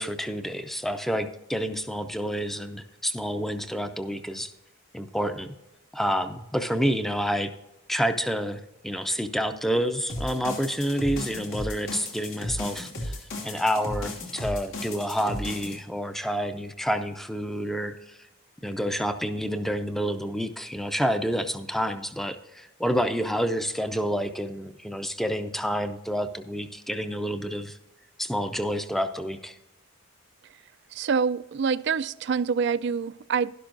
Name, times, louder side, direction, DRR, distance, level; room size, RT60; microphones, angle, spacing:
voice 1, 0.0-4.5 4.9-5.5 5.9-7.5 7.9-13.2 13.4-18.2 18.6-27.8 28.2-29.6, equal, ahead, 0.5 m, -28 dB
sound 1, 10.1-15.8, left 1 dB, 80° left, 2.6 m, -34 dB
voice 2, 30.9-33.5, right 6 dB, 55° right, 0.3 m, -26 dB
11.5 x 11.5 x 2.6 m
head